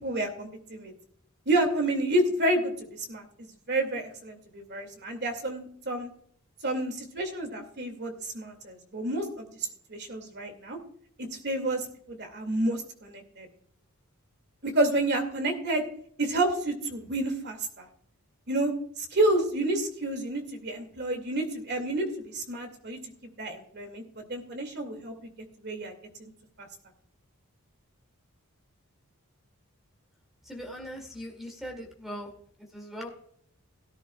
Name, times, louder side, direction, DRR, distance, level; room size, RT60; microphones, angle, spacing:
voice 1, 0.0-0.9 1.5-2.7 3.1-6.1 6.6-9.5 9.9-10.8 11.2-13.5 14.6-15.8 16.2-17.9 18.5-18.7 19.0-25.3 25.6-25.9 26.2-26.3, right 1 dB, 50° right, 5 dB, 2.3 m, -29 dB
voice 2, 30.4-32.3 32.6-33.1, equal, ahead, 3 dB, 2.5 m, -40 dB
17.5 x 10.5 x 2.4 m, 0.63 s
head